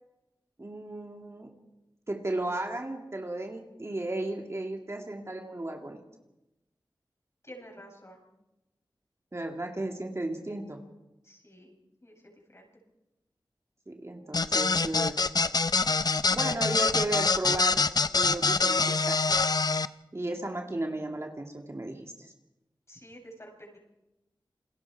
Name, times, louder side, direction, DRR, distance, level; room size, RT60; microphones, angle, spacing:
voice 1, 0.6-1.5 2.1-6.0 9.3-10.8 13.9-15.2 16.3-17.9 18.1-19.6 20.1-22.3, right 2 dB, 35° right, 2 dB, 2.3 m, -35 dB
voice 2, 7.4-8.2 11.2-11.7 12.0-12.7 22.9-23.8, equal, 35° left, 0 dB, 7.8 m, -49 dB
sound 1, 14.3-19.9, left 4 dB, 55° left, 0.6 m, -25 dB
28.5 x 21.0 x 4.8 m, 0.98 s
wide cardioid pair, 55°, 8 cm